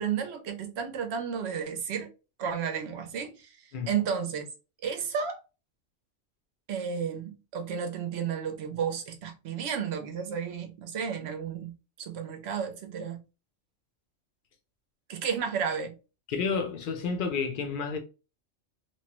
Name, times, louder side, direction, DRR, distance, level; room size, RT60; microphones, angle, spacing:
voice 1, 0.0-2.1 2.4-3.6 3.9-4.5 4.8-5.4 6.7-13.2 15.1-16.0, right 7 dB, 65° right, 0.8 m, -32 dB
voice 2, 16.3-18.0, left 5 dB, 50° left, 0.7 m, -30 dB
3.1 x 2.1 x 2.9 m
omnidirectional pair, 1.3 m